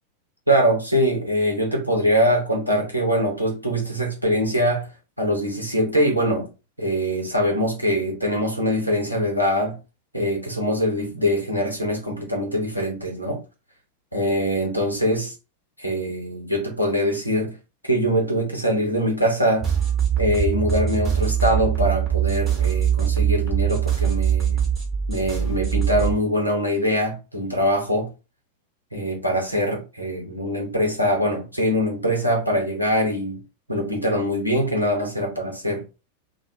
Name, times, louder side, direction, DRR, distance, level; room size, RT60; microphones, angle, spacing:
voice 1, 0.5-4.9 5.2-6.5 6.8-9.8 10.1-13.4 14.1-15.3 15.8-17.6 17.8-19.7 20.2-24.6 25.1-28.1 28.9-33.4 33.7-35.8, equal, 90° right, 0.9 m, -23 dB
sound 1, 19.6-26.2, right 9 dB, 25° right, 1.0 m, -22 dB
2.3 x 2.3 x 2.8 m
figure-of-eight pair, 90°, 0 cm